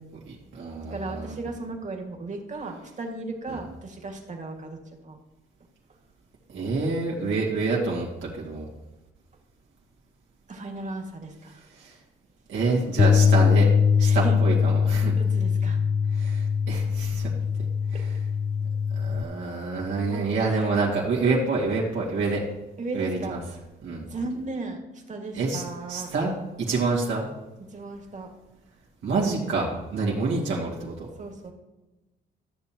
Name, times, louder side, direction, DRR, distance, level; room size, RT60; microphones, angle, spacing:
voice 1, 0.3-1.3 3.5-3.6 6.5-8.7 11.8-11.9 12.5-13.7 14.0-15.1 16.1-17.3 17.9-18.1 18.9-22.4 22.9-23.4 23.8-24.0 25.3-25.6 25.9-26.3 26.7-27.3 29.0-31.1, right 3 dB, 75° right, -4 dB, 2.4 m, -27 dB
voice 2, 0.8-4.8 5.0-5.2 10.5-11.7 14.0-14.4 15.2-15.8 20.0-20.8 22.8-23.4 24.0-24.8 25.1-26.1 27.6-28.3 31.2-31.5, right 3 dB, 35° right, 2 dB, 2.0 m, -36 dB
Bass guitar, 13.0-19.2, left 6 dB, 30° left, 0.5 m, -22 dB
13.5 x 6.9 x 3.0 m, 1.1 s
cardioid pair, 90°, 20 cm